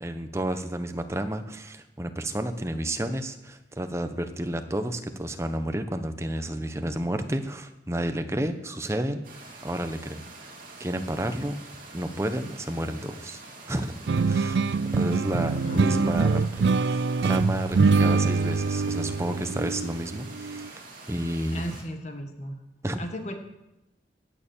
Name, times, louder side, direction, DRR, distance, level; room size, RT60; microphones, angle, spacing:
voice 1, 0.0-10.5 10.8-11.6 11.9-13.4 13.7-14.0 14.3-14.6 14.9-16.5 16.8-20.8 21.1-21.6 22.8-23.0, right 1 dB, 15° right, 8 dB, 0.9 m, -31 dB
sound 1, 9.2-21.8, right 3 dB, 50° right, 2.8 m, -46 dB
sound 2, 14.1-20.7, right 4 dB, 75° right, 0.4 m, -24 dB
voice 2, 15.4-15.9 21.5-22.6 23.0-23.3, equal, 40° left, 5 dB, 1.5 m, -35 dB
18.0 x 6.7 x 7.2 m, 0.93 s
head